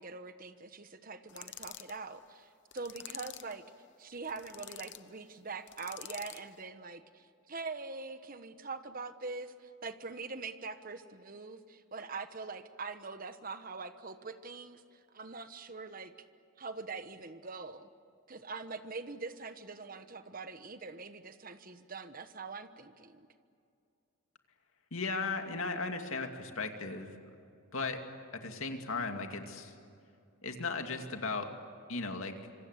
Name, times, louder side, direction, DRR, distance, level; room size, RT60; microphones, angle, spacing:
voice 1, 0.0-3.6 4.0-16.1 16.6-17.9 18.3-23.3, right 4 dB, 40° right, 10 dB, 1.2 m, -43 dB
sound 1, 1.3-2.0 2.7-3.6 4.2-5.0 5.7-6.5, left 12 dB, 55° left, 0.9 m, -47 dB
voice 2, 24.9-27.1 27.7-28.0 28.4-29.7 30.4-31.5 31.9-32.3, left 3 dB, 70° left, 5 dB, 2.5 m, -36 dB
26.0 x 25.5 x 8.2 m, 2.5 s
head